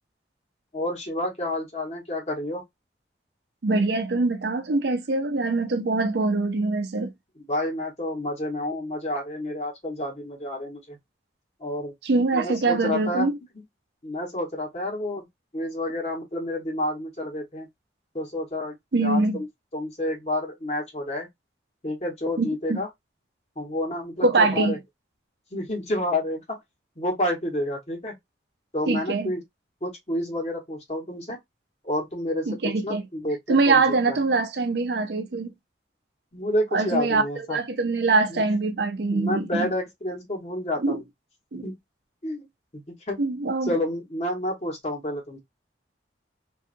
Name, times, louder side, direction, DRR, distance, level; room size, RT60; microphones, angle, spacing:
voice 1, 0.7-2.6 7.4-11.0 11.6-11.9 12.3-13.3 13.5-13.6 14.0-15.3 15.5-17.7 18.1-19.5 19.7-21.3 21.8-22.9 23.6-24.8 25.5-26.6 27.0-28.2 28.7-29.4 29.8-31.4 31.8-34.2 36.3-37.6 38.3-38.4 39.1-41.0 41.6-41.8 42.2-42.5 42.7-43.2 43.7-45.4, left 1 dB, 35° left, 1.3 m, -29 dB
voice 2, 3.6-7.1 12.0-13.4 18.9-19.4 22.4-22.8 24.2-24.8 28.9-29.3 32.5-33.0 33.5-35.5 36.7-39.7 40.8-41.0 41.5-41.6 43.2-43.8, right 3 dB, 60° right, 0.6 m, -23 dB
2.7 x 2.4 x 2.5 m
head